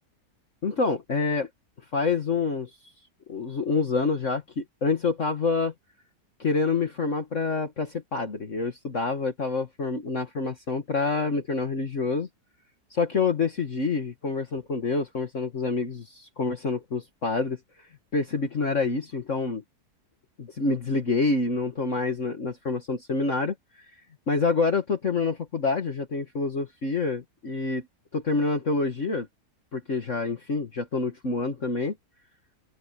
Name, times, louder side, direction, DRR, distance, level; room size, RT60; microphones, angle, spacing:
voice 1, 0.6-1.5 1.9-2.7 3.3-5.7 6.4-12.3 12.9-17.6 18.1-19.6 20.4-23.5 24.3-27.9 28.1-29.3 29.7-31.9, left 4 dB, 45° left, 2.2 m, -27 dB
open air
omnidirectional pair, 1.8 m